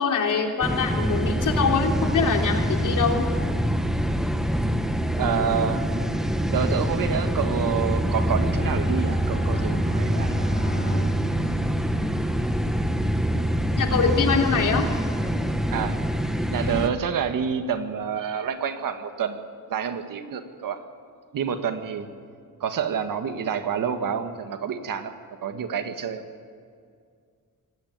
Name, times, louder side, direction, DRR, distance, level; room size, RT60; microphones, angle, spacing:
voice 1, 0.0-3.3 13.8-14.9, left 5 dB, 65° left, 2 dB, 3.4 m, -24 dB
sound 1, 0.6-16.9, equal, ahead, 1.3 m, -25 dB
voice 2, 5.2-5.9 6.5-10.5 15.7-16.0 16.5-20.8 21.3-22.1 22.6-25.1 25.4-26.2, right 7 dB, 75° right, 8 dB, 1.8 m, -28 dB
Bowed string instrument, 8.5-12.9, right 2 dB, 30° left, 5.9 m, -31 dB
26.0 x 18.0 x 9.6 m, 2.2 s
wide cardioid pair, 130°, 33 cm